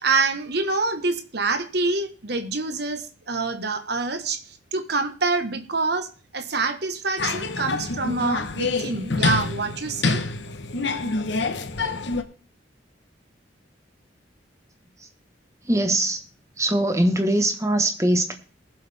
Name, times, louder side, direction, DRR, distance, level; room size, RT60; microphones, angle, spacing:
voice 1, 0.0-10.2, right 3 dB, 60° right, 8 dB, 1.4 m, -26 dB
sound 1, 7.2-12.2, left 3 dB, 65° left, 1.1 m, -26 dB
voice 2, 15.6-16.2 16.6-18.4, right 1 dB, 15° right, 7 dB, 1.3 m, -22 dB
20.0 x 7.8 x 3.5 m, 0.37 s
head